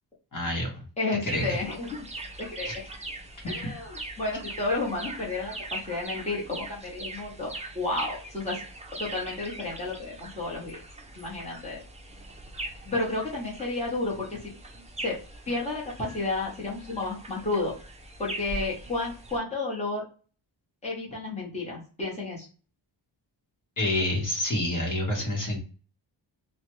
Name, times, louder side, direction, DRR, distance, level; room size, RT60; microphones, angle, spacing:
voice 1, 0.3-0.8 1.3-1.6 2.7-2.8 23.8-25.6, left 1 dB, 40° left, -1 dB, 1.0 m, -28 dB
voice 2, 1.0-2.0 2.4-2.9 3.4-8.6 9.0-10.8 11.1-11.8 12.8-14.5 15.0-15.2 15.4-17.7 18.2-20.1 20.8-22.5, left 2 dB, 15° left, -5 dB, 1.0 m, -31 dB
sound 1, 1.3-19.4, right 2 dB, 15° right, 0.3 m, -41 dB
3.2 x 2.1 x 3.0 m, 0.38 s
wide cardioid pair, 165°, 46 cm